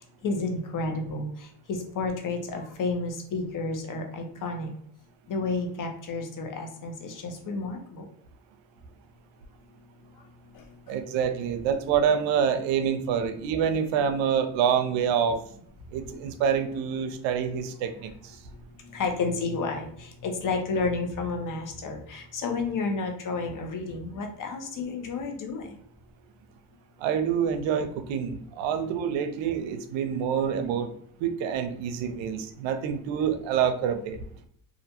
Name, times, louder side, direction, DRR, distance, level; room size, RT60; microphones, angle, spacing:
voice 1, 0.2-4.7 5.3-8.0 10.5-10.6 16.1-16.2 18.9-25.7, left 3 dB, 45° left, 4 dB, 0.7 m, -31 dB
voice 2, 10.9-15.4 15.9-18.1 27.0-30.9 31.2-34.2, right 7 dB, 75° right, 9 dB, 0.5 m, -26 dB
2.4 x 2.2 x 2.8 m, 0.64 s
supercardioid pair, 75°, 46 cm